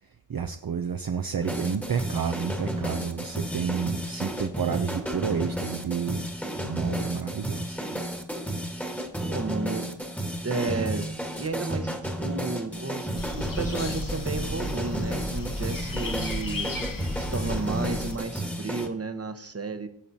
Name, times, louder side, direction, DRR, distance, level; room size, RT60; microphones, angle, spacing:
voice 1, 0.3-6.3 6.6-7.8, right 7 dB, 50° right, 7 dB, 0.6 m, -30 dB
sound 1, 1.4-18.9, right 1 dB, 5° left, 1.4 m, -32 dB
voice 2, 9.3-9.9 10.4-11.1 11.4-19.9, right 3 dB, 35° right, 7 dB, 1.0 m, -33 dB
sound 2, 13.1-18.2, left 2 dB, 45° left, 1.1 m, -34 dB
17.0 x 7.2 x 2.8 m, 0.69 s
wide cardioid pair, 75°, 44 cm